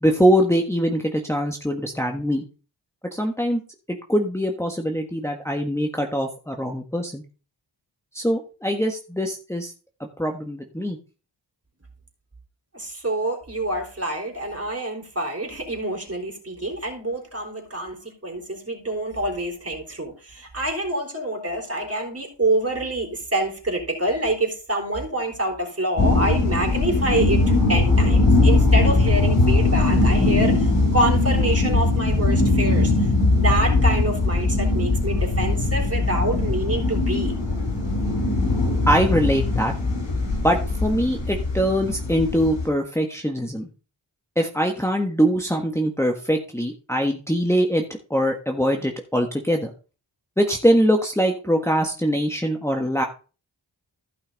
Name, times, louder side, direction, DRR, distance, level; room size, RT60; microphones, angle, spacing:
voice 1, 0.0-2.4 3.1-3.6 3.9-7.2 8.1-9.7 10.2-11.0 38.9-39.7 40.4-43.7 44.4-47.8 48.1-49.7 50.4-53.0, equal, 5° left, 2 dB, 1.4 m, -22 dB
voice 2, 12.7-32.9 33.4-37.3, right 1 dB, 30° right, 0 dB, 4.0 m, -26 dB
sound 1, 26.0-42.7, left 2 dB, 85° left, 4.6 m, -20 dB
15.0 x 5.7 x 4.0 m, 0.35 s
cardioid pair, 45°, 45 cm